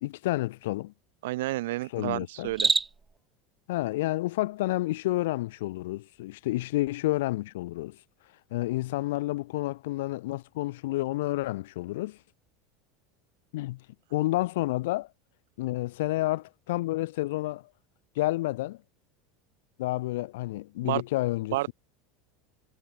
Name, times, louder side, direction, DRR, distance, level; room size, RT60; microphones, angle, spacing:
voice 1, 0.0-0.9 1.9-2.5 3.7-8.0 8.5-12.2 13.5-13.8 14.1-15.1 15.6-17.6 18.2-18.8 19.8-21.7, left 18 dB, 80° left, 0.8 m, -30 dB
voice 2, 1.2-2.7 20.8-21.0 21.5-21.7, right 17 dB, 85° right, 0.5 m, -30 dB
Cricket, 2.4-3.2, right 4 dB, 10° right, 0.4 m, -27 dB
supercardioid pair, 175°, 0 cm